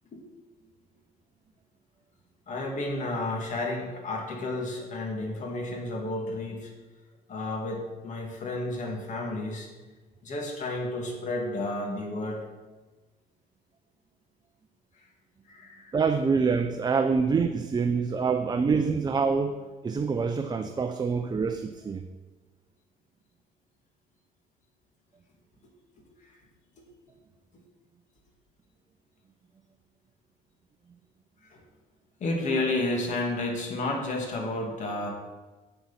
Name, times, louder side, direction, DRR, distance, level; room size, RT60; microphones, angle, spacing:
voice 1, 2.5-6.7 7.3-9.7 10.2-12.5 15.0-15.1 15.5-16.0 26.8-26.9 31.4-31.6 32.2-35.1, left 2 dB, 45° left, 0 dB, 2.5 m, -31 dB
voice 2, 15.9-22.0, right 5 dB, 25° right, 7 dB, 0.5 m, -26 dB
8.3 x 6.9 x 5.8 m, 1.3 s
cardioid pair, 110°, 17 cm